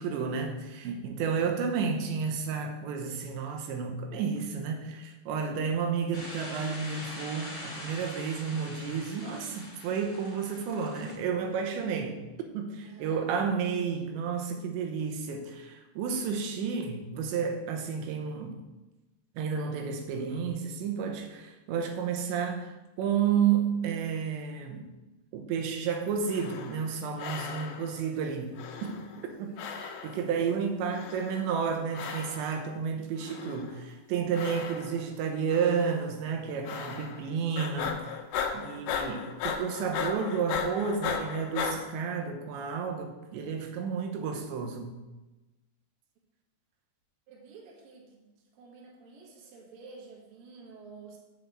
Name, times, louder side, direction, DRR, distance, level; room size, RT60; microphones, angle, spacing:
voice 1, 0.0-12.2 12.5-18.6 19.4-24.9 25.3-29.1 29.4-38.0 38.5-45.0, right 6 dB, 90° right, 4 dB, 3.3 m, -31 dB
sound 1, 6.1-11.1, left 1 dB, 30° left, 3.5 m, -43 dB
voice 2, 12.8-13.3 29.2-29.7 47.3-51.2, right 4 dB, 60° right, -3 dB, 3.2 m, -50 dB
sound 2, 26.2-26.9 27.2-28.0 28.6-29.3 29.6-30.3 30.9-31.5 31.9-32.6 33.2-33.8 34.3-35.1 35.5-36.0 36.7-37.3 37.6-41.8, left 7 dB, 80° left, 2.8 m, -36 dB
7.6 x 5.4 x 7.5 m, 1.1 s
omnidirectional pair, 5.0 m